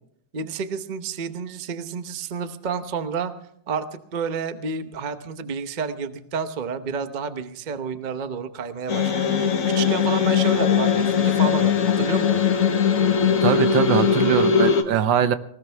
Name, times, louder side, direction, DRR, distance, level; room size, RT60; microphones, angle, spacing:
voice 1, 0.3-3.3 3.7-12.4, right 5 dB, 40° right, 10 dB, 0.7 m, -30 dB
sound 1, 8.9-14.8, left 7 dB, 45° left, 1.5 m, -20 dB
voice 2, 13.4-15.3, right 9 dB, 75° right, 12 dB, 1.5 m, -21 dB
19.5 x 19.0 x 3.4 m, 0.70 s
omnidirectional pair, 2.1 m